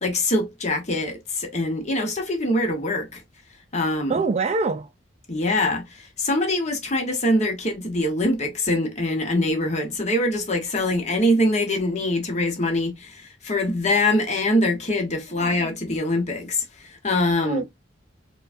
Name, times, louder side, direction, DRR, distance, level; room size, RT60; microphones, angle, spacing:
voice 1, 0.0-3.2 3.7-4.2 5.3-17.6, left 1 dB, 35° left, 1.0 m, -24 dB
voice 2, 4.1-4.9 15.3-15.5 17.4-17.6, right 4 dB, 35° right, 0.3 m, -24 dB
4.6 x 2.3 x 2.5 m
head